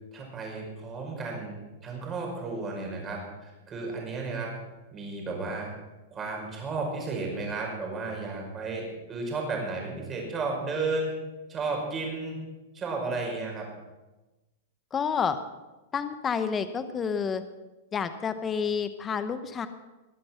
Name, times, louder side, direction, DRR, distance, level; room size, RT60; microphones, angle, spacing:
voice 1, 0.1-4.5 4.9-5.7 6.1-11.1 11.5-12.4 12.7-13.7, right 3 dB, 20° right, 0 dB, 5.2 m, -33 dB
voice 2, 14.9-15.4 15.9-17.4 17.9-19.7, left 6 dB, 20° left, 11 dB, 0.8 m, -29 dB
21.0 x 7.8 x 5.8 m, 1.1 s
hypercardioid pair, 140°, 0 cm